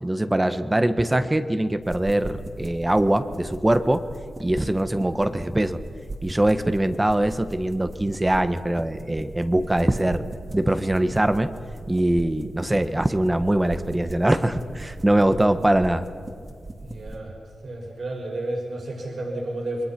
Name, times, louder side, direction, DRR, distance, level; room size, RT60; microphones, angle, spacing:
voice 1, 0.0-4.0 4.4-5.8 6.2-10.2 10.5-11.5 11.9-16.1, right 1 dB, 20° right, 9 dB, 1.4 m, -22 dB
sound 1, 1.8-17.2, right 2 dB, 40° right, 2.8 m, -39 dB
voice 2, 12.7-13.1 16.8-17.4 17.6-19.8, right 1 dB, 60° right, -1 dB, 5.9 m, -32 dB
27.5 x 21.5 x 6.1 m, 2.2 s
cardioid pair, 45°, 0 cm